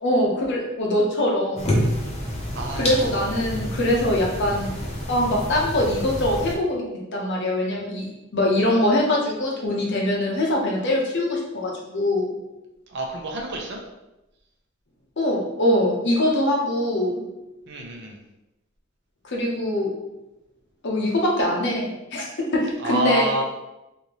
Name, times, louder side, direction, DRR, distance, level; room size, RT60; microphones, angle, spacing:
voice 1, 0.0-1.7 2.7-4.7 5.1-6.8 7.1-8.1 8.3-12.3 15.2-17.2 19.2-19.9 20.8-22.3 22.5-23.3, left 1 dB, 60° left, -1 dB, 0.8 m, -23 dB
sound 1, 1.6-6.6, equal, 30° left, 0.7 m, -28 dB
voice 2, 2.5-3.0 12.9-13.8 17.7-18.2 22.8-23.4, right 2 dB, 55° right, 0 dB, 0.7 m, -27 dB
3.4 x 2.8 x 3.0 m, 0.95 s
head